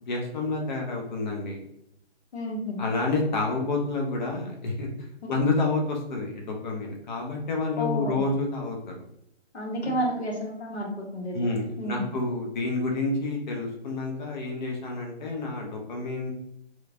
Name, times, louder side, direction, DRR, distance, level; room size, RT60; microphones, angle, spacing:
voice 1, 0.1-1.6 2.8-9.0 9.8-9.9 11.3-16.3, left 3 dB, 45° left, 0 dB, 0.6 m, -29 dB
voice 2, 2.3-2.8 5.2-5.4 7.8-8.2 9.5-11.5 11.8-12.1, equal, 75° left, 0 dB, 0.9 m, -31 dB
3.0 x 2.1 x 2.4 m, 0.78 s
figure-of-eight pair, 135°, 33 cm